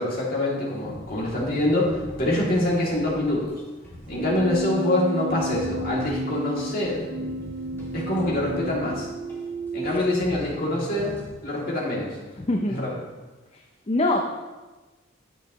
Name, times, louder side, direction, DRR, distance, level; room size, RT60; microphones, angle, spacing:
voice 1, 0.0-3.5 4.1-7.0 7.9-9.1 9.7-11.1 11.4-12.2 12.8-12.9, left 1 dB, 45° left, -5 dB, 2.6 m, -25 dB
sound 1, 0.8-11.3, equal, 10° left, 2.2 m, -41 dB
Keyboard (musical), 4.1-10.0, right 1 dB, 70° right, 0.4 m, -33 dB
voice 2, 12.4-12.8 13.5-14.2, left 2 dB, 30° left, 2 dB, 0.5 m, -25 dB
9.6 x 8.1 x 3.1 m, 1.2 s
head